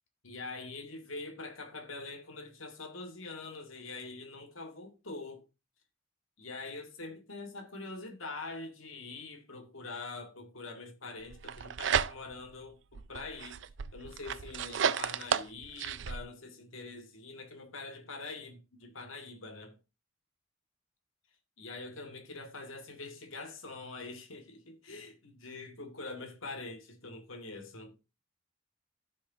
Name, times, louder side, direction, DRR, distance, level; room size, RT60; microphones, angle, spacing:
voice 1, 0.2-5.4 6.4-13.6 13.9-19.8 21.6-28.0, left 3 dB, 85° left, 1.7 m, -44 dB
sound 1, 11.3-12.5 12.9-16.2, right 7 dB, 65° right, 0.5 m, -33 dB
14.5 x 6.3 x 2.7 m
head